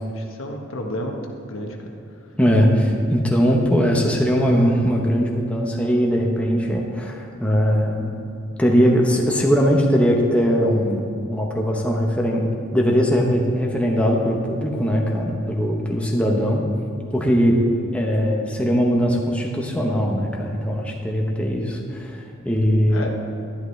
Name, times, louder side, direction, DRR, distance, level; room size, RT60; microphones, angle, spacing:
voice 1, 0.2-1.8 22.2-22.3 22.9-23.1, equal, 90° left, 2 dB, 1.2 m, -31 dB
voice 2, 2.4-8.1 8.6-16.7 17.1-17.6 17.9-23.1, equal, 5° left, -1 dB, 0.9 m, -20 dB
11.5 x 11.0 x 3.2 m, 2.6 s
head